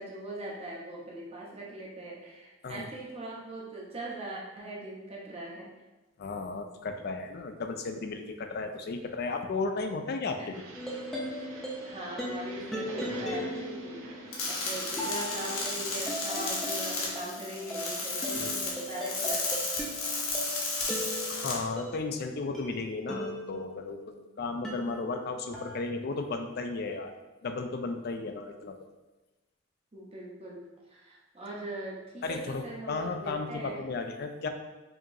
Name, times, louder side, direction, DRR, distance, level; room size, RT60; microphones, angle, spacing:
voice 1, 0.0-5.7 10.4-10.5 11.8-14.0 14.5-19.6 29.9-30.6 30.9-33.9, right 1 dB, 30° right, -4 dB, 0.8 m, -41 dB
voice 2, 6.2-10.4 18.3-18.6 21.3-27.1 27.4-28.8 32.2-34.5, left 3 dB, 50° left, 6 dB, 0.4 m, -34 dB
sound 1, 10.5-16.2, right 2 dB, 85° right, 0.6 m, -46 dB
sound 2, 10.7-24.1 24.6-25.8, left 1 dB, ahead, 0.6 m, -38 dB
sound 3, 14.3-21.5, left 3 dB, 90° left, 1.0 m, -33 dB
5.0 x 2.8 x 2.7 m, 1.1 s
head